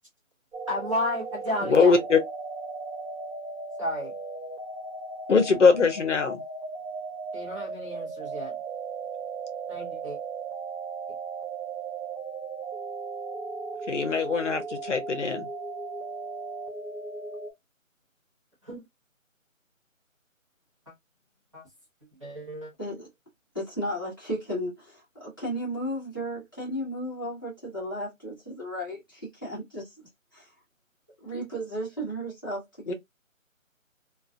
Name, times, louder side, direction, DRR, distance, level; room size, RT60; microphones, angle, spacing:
sound 1, 0.5-17.5, right 4 dB, 70° right, 1.1 m, -37 dB
voice 1, 0.7-2.0 3.8-4.2 7.3-8.5 9.7-10.2 18.6-18.8 21.5-21.6 22.2-22.7, left 1 dB, 25° right, 0.7 m, -32 dB
voice 2, 1.6-2.2 5.3-6.4 13.9-15.5 32.9-33.0, left 5 dB, 60° left, 0.7 m, -22 dB
voice 3, 22.8-23.1 23.5-30.5 31.2-32.9, equal, 15° left, 0.7 m, -34 dB
2.3 x 2.2 x 2.4 m
figure-of-eight pair, 170°, 41 cm